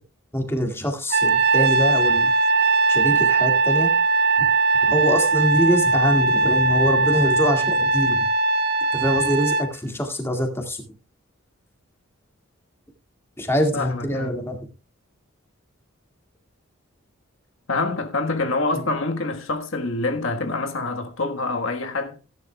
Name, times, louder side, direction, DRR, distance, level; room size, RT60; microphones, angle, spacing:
voice 1, 0.3-2.3 2.9-3.9 4.9-8.3 8.9-10.8 13.4-14.7, equal, 10° left, 2.0 m, -24 dB
Trumpet, 1.1-9.7, right 3 dB, 50° right, 1.1 m, -19 dB
voice 2, 13.7-14.3 17.7-22.2, left 3 dB, 70° left, 1.5 m, -26 dB
17.0 x 10.5 x 2.3 m
head